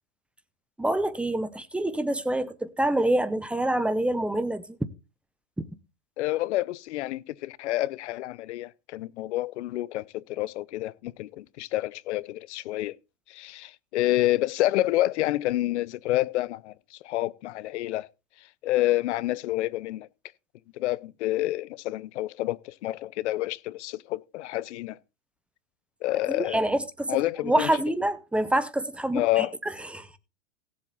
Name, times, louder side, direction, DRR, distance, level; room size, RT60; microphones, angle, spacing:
voice 1, 0.8-4.8 26.3-30.2, right 1 dB, 5° right, 0.7 m, -27 dB
voice 2, 6.2-13.0 13.3-18.1 18.6-20.1 20.7-25.0 26.0-26.7 27.1-27.7 29.1-29.5, left 16 dB, 65° left, 0.7 m, -28 dB
16.5 x 7.6 x 4.1 m
hypercardioid pair, 125°, 37 cm